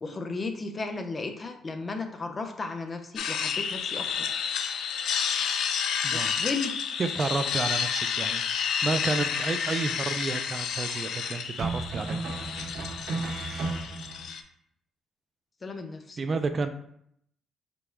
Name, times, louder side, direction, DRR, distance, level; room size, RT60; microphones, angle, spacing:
voice 1, 0.0-4.3 6.1-6.7 15.6-16.2, left 3 dB, 35° left, 6 dB, 0.6 m, -35 dB
sound 1, 3.2-14.4, left 7 dB, 75° left, 0.4 m, -30 dB
voice 2, 6.0-6.3 7.0-12.3 16.2-16.7, right 4 dB, 40° right, 9 dB, 0.4 m, -31 dB
sound 2, 9.3-9.5 11.6-14.2, right 3 dB, 80° right, 1.1 m, -34 dB
5.1 x 2.3 x 4.4 m, 0.73 s
cardioid pair, 90°, 0 cm